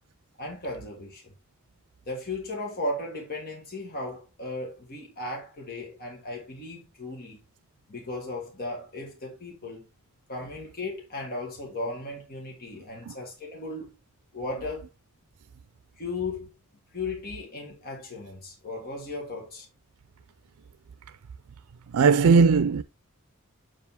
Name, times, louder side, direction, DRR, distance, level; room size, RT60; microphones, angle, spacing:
voice 1, 0.4-1.3 2.1-7.4 7.9-9.9 10.3-13.9 14.3-14.9 16.0-16.5 16.9-19.7, left 2 dB, 45° left, 1.8 m, -36 dB
voice 2, 21.9-22.8, right 5 dB, 85° right, 0.4 m, -19 dB
7.4 x 4.8 x 3.5 m
head